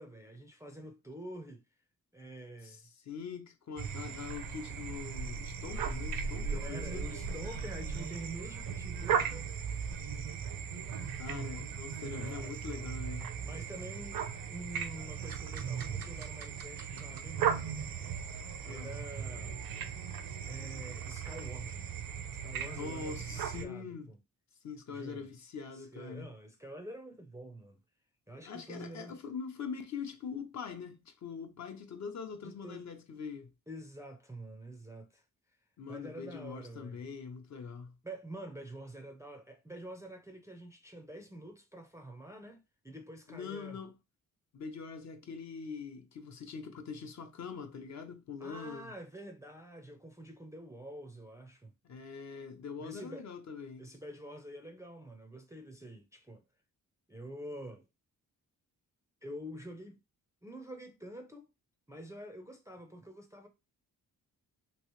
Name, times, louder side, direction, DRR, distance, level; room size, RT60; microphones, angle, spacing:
voice 1, 0.0-1.6 2.1-2.9 6.4-9.5 12.0-12.8 13.4-14.2 14.5-17.8 18.6-19.6 20.4-22.0 22.4-24.2 24.9-25.3 25.7-27.8 28.3-29.2 32.4-32.9 33.7-35.2 35.9-37.0 38.0-43.8 48.4-51.7 52.8-53.3 53.8-56.4 57.1-57.9 59.2-60.0 60.4-61.5 61.9-63.5, right 1 dB, 10° right, 0.4 m, -47 dB
voice 2, 2.6-7.1 11.1-13.3 18.6-19.0 22.8-24.1 24.6-26.3 28.4-33.5 35.8-38.0 43.3-43.9 44.5-48.9 51.8-53.9, left 5 dB, 55° left, 0.7 m, -43 dB
sound 1, 3.8-23.6, right 7 dB, 80° right, 0.6 m, -37 dB
3.0 x 2.8 x 3.0 m
cardioid pair, 110°, 34 cm